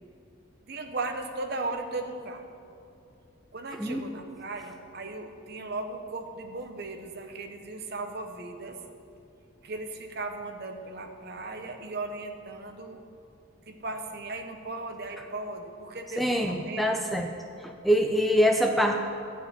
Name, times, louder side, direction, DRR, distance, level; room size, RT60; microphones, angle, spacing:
voice 1, 0.7-2.4 3.5-8.8 9.6-13.0 13.7-16.8, right 2 dB, 50° right, 5 dB, 1.0 m, -37 dB
voice 2, 16.2-17.3 17.6-19.0, equal, ahead, 3 dB, 0.5 m, -24 dB
12.5 x 5.6 x 8.7 m, 2.6 s
head